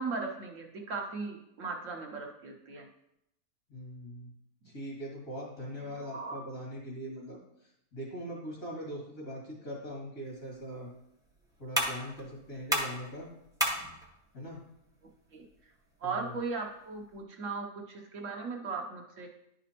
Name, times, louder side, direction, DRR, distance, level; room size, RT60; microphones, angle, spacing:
voice 1, 0.0-2.9 5.9-6.4 15.3-15.4 16.0-19.3, right 4 dB, 60° right, 1 dB, 1.1 m, -37 dB
voice 2, 3.7-4.3 4.6-7.4 7.9-10.9 11.6-13.3 14.3-14.6 16.0-16.3, equal, 60° left, -4 dB, 2.8 m, -41 dB
sound 1, 10.2-17.2, equal, 5° right, 0.8 m, -37 dB
10.5 x 5.0 x 2.9 m, 0.81 s
omnidirectional pair, 1.6 m